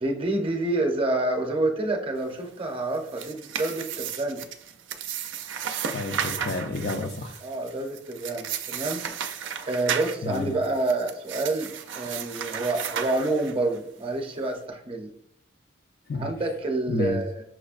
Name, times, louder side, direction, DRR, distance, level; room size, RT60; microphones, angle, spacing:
voice 1, 0.0-4.4 7.4-9.0 9.7-15.1 16.2-17.4, right 2 dB, 30° right, 3 dB, 0.6 m, -28 dB
sound 1, 2.9-13.8, right 8 dB, 85° right, 0.4 m, -34 dB
voice 2, 5.9-7.4 10.2-10.6 16.1-16.3 16.9-17.2, left 2 dB, 55° left, 6 dB, 0.4 m, -30 dB
6.0 x 2.1 x 2.4 m, 0.68 s
head